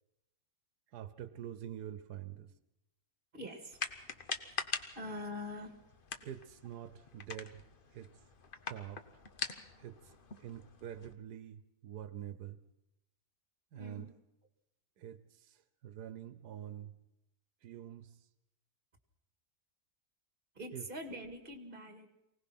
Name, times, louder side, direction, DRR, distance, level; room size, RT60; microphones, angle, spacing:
voice 1, 0.9-2.5 6.2-7.6 7.9-8.1 8.7-9.0 9.8-10.0 10.4-12.6 13.7-14.1 15.0-15.2 15.8-16.9 17.6-18.2 20.7-20.8, right 10 dB, 90° right, 14 dB, 1.5 m, -45 dB
voice 2, 3.3-3.8 4.9-5.8 13.7-14.2 20.5-22.1, left 1 dB, 35° right, 6 dB, 2.3 m, -44 dB
sound 1, 3.7-11.1, left 5 dB, 40° left, 1.1 m, -44 dB
24.0 x 18.0 x 6.0 m, 0.88 s
omnidirectional pair, 1.7 m